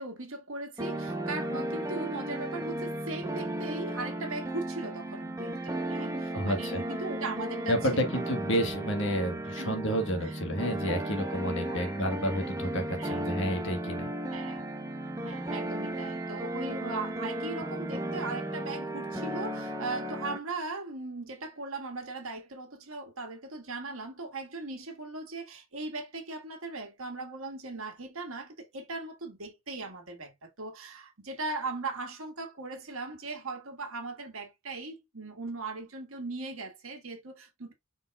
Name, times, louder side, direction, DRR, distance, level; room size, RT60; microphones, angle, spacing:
voice 1, 0.0-8.2 9.6-9.8 10.2-10.5 11.7-11.9 13.0-13.3 14.3-14.7 15.2-37.7, right 3 dB, 65° right, 1.6 m, -39 dB
sound 1, 0.8-20.4, right 1 dB, 15° right, 0.8 m, -35 dB
voice 2, 6.3-6.8 7.7-14.1, equal, 55° left, 1.4 m, -30 dB
4.9 x 4.1 x 2.3 m
head